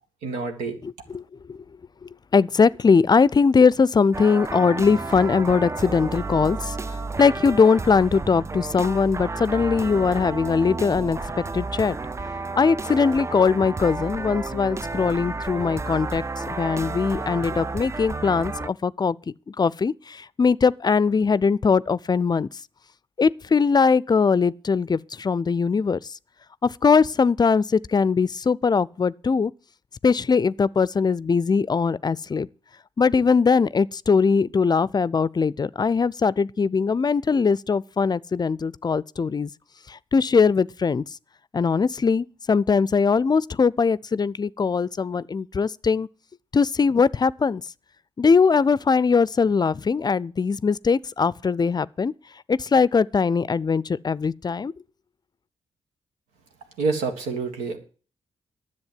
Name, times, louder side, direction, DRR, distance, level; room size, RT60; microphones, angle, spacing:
voice 1, 0.2-0.8 56.8-57.8, right 4 dB, 85° right, 1.7 m, -27 dB
voice 2, 2.0-11.2 11.5-12.0 12.6-19.2 19.5-22.5 23.2-26.1 26.6-29.5 30.0-32.5 33.0-39.5 39.9-41.0 41.5-46.1 46.5-47.6 48.2-52.1 52.5-54.7, left 5 dB, 35° left, 0.5 m, -21 dB
sound 1, 4.1-18.7, right 3 dB, 25° right, 0.5 m, -31 dB
10.5 x 7.4 x 7.5 m
hypercardioid pair, 40°, 12 cm